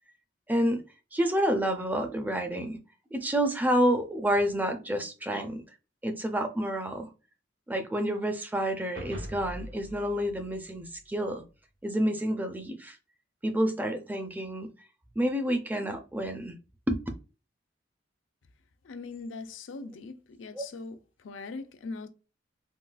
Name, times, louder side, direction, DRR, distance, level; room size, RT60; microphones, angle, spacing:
voice 1, 0.5-0.8 1.1-2.8 3.1-5.6 6.0-7.1 7.7-11.4 11.8-13.0 13.4-14.7 15.2-16.5 16.9-17.0 20.5-20.6, equal, 10° right, 0.4 m, -29 dB
sound 1, 8.9-11.4, equal, 85° right, 1.1 m, -43 dB
voice 2, 18.8-22.1, left 3 dB, 80° left, 0.5 m, -41 dB
3.8 x 2.3 x 2.3 m
head